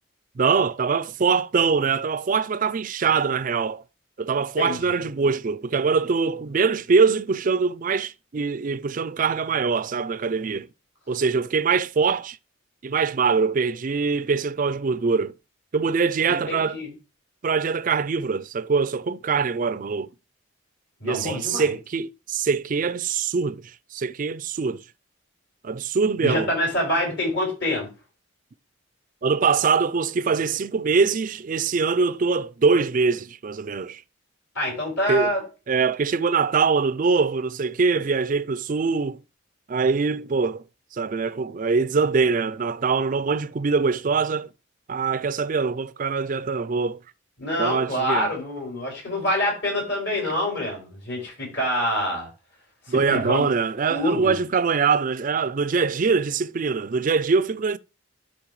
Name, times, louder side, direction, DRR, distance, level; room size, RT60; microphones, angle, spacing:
voice 1, 0.4-3.8 4.2-10.7 11.1-12.4 12.8-15.3 15.7-16.8 17.4-20.1 21.0-24.8 25.6-26.5 29.2-34.0 35.1-35.3 35.7-39.2 39.7-40.6 40.9-44.5 44.9-47.0 47.6-48.3 52.9-57.8, right 5 dB, 40° right, 0.4 m, -23 dB
voice 2, 4.6-5.0 16.3-16.9 21.0-21.7 26.2-27.9 34.6-35.4 47.4-52.3 52.9-53.4 53.9-54.3, left 1 dB, 60° left, 5.5 m, -26 dB
12.0 x 5.4 x 3.1 m
head